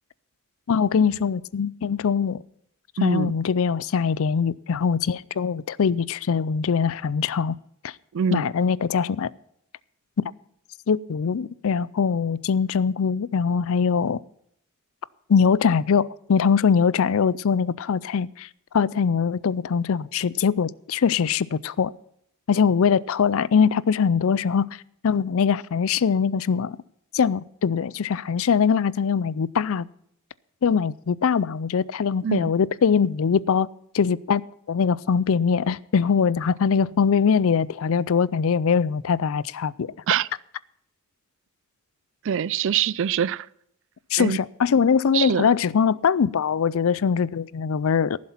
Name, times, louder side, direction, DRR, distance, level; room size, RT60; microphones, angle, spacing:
voice 1, 0.7-2.4 3.0-7.6 7.8-7.9 8.3-9.3 10.9-14.2 15.3-18.5 18.7-21.9 22.5-24.7 25.0-26.8 27.1-29.9 30.6-33.7 33.9-34.4 34.7-39.9 44.1-48.2, left 6 dB, 65° left, 0.4 m, -22 dB
voice 2, 3.0-3.3 8.1-8.5 32.2-32.5 40.1-40.3 42.2-43.5 44.2-44.4 45.1-45.5, right 8 dB, 60° right, 0.4 m, -24 dB
15.5 x 7.5 x 5.7 m
head